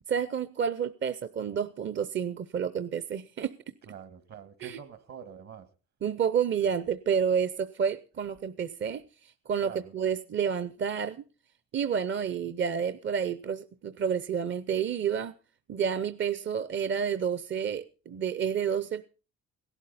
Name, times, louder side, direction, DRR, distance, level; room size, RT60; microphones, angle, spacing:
voice 1, 0.1-3.5 4.6-4.8 6.0-11.2 11.7-15.3 15.7-19.0, right 7 dB, 40° right, 0.6 m, -30 dB
voice 2, 3.8-5.7 9.6-9.9, right 7 dB, 60° right, 1.8 m, -45 dB
17.5 x 12.0 x 4.1 m
cardioid pair, 90°, 30 cm